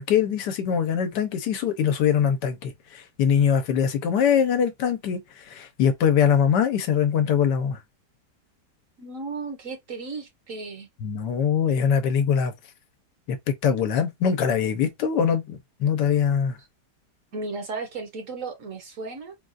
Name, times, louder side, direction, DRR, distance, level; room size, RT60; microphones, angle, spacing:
voice 1, 0.0-5.2 5.5-7.8 11.0-12.5 13.3-16.6, left 7 dB, 80° left, 1.3 m, -22 dB
voice 2, 9.0-10.9 17.3-19.4, right 3 dB, 55° right, 1.1 m, -35 dB
3.9 x 2.3 x 2.4 m
omnidirectional pair, 1.8 m